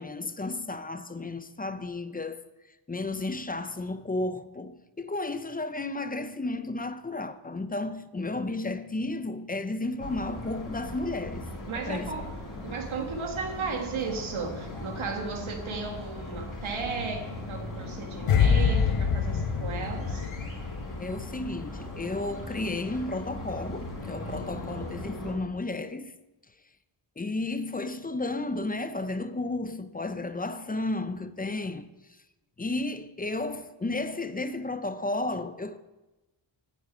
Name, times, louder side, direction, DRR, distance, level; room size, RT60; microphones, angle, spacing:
voice 1, 0.0-2.4 2.9-11.5 11.7-12.1 12.6-12.8 21.0-26.1 27.2-31.9 32.6-35.8, left 2 dB, 20° left, 0.5 m, -33 dB
sound 1, 10.0-25.3, left 1 dB, 40° left, 3.9 m, -39 dB
voice 2, 11.7-12.3 12.6-20.3, right 4 dB, 70° right, 1.9 m, -35 dB
sound 2, 18.3-21.5 21.7-22.0, left 6 dB, 90° left, 1.1 m, -25 dB
9.3 x 8.8 x 8.6 m
wide cardioid pair, 170°, 50 cm